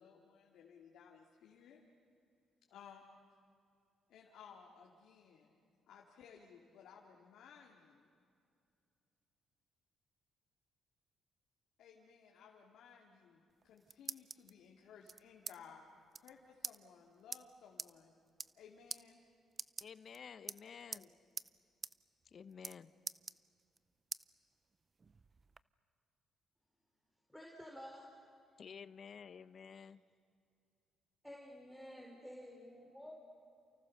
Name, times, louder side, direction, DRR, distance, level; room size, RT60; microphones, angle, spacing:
voice 1, 0.0-1.8 2.7-3.1 4.1-5.5 5.9-8.1 11.8-15.8 16.2-18.1 18.5-19.2 20.9-21.1, left 7 dB, 80° left, 0 dB, 2.6 m, -59 dB
sound 1, 13.5-14.5 15.1-15.6 15.8-15.9 16.1-16.3 16.6-16.8 17.3-17.4 17.8-17.9 18.3-18.6 18.9-19.0 19.5-20.2 20.5-21.1 21.4-21.5 21.8-21.9 22.2-22.8 23.1-23.8 24.1-24.2 24.7-25.6, right 4 dB, 35° right, 0.6 m, -45 dB
voice 2, 19.8-21.1 22.2-22.9 28.6-30.0, left 6 dB, 50° left, 14 dB, 0.8 m, -52 dB
voice 3, 27.3-28.1 31.2-33.1, equal, ahead, -2 dB, 4.3 m, -51 dB
29.5 x 29.0 x 6.7 m, 2.4 s
cardioid pair, 90°, 0 cm